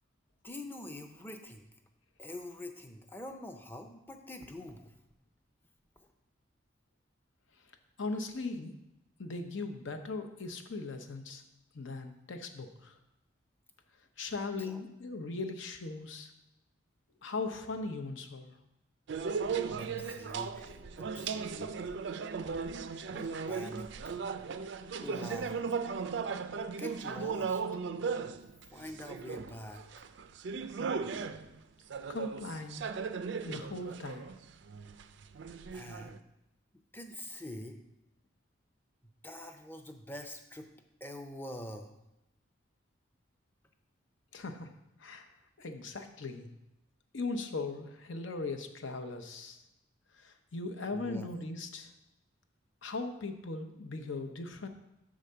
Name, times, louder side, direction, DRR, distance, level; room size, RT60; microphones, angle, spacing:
voice 1, 0.4-1.7 2.2-4.9 14.6-14.8 19.8-22.0 23.1-23.9 25.0-25.6 26.7-27.6 28.7-29.8 35.7-36.2 36.9-37.8 39.2-40.7 41.0-41.9 50.9-51.3, left 1 dB, 10° left, 5 dB, 0.5 m, -45 dB
voice 2, 8.0-8.7 9.2-11.4 11.7-13.0 14.2-16.3 17.2-18.5 32.1-32.9 33.4-34.3 44.3-44.7 45.0-45.3 45.6-46.5 47.1-49.6 50.1-51.9 52.8-54.7, left 3 dB, 70° left, 7 dB, 0.8 m, -39 dB
sound 1, 19.1-31.6 31.9-36.2, right 5 dB, 65° right, 0.4 m, -37 dB
6.4 x 4.9 x 6.7 m, 0.90 s
head